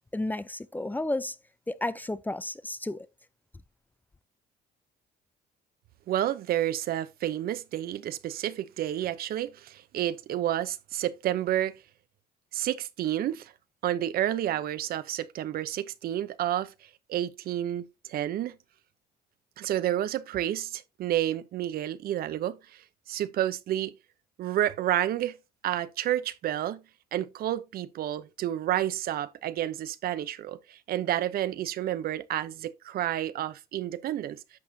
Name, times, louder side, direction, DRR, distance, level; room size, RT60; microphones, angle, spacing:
voice 1, 0.1-1.4 1.7-3.1, left 2 dB, 10° left, 0.5 m, -32 dB
voice 2, 6.1-11.8 12.5-13.5 13.8-18.6 19.6-23.9 24.4-25.4 25.6-26.8 27.1-34.4, right 12 dB, 60° right, 0.7 m, -30 dB
10.5 x 6.5 x 2.7 m
cardioid pair, 110°, 17 cm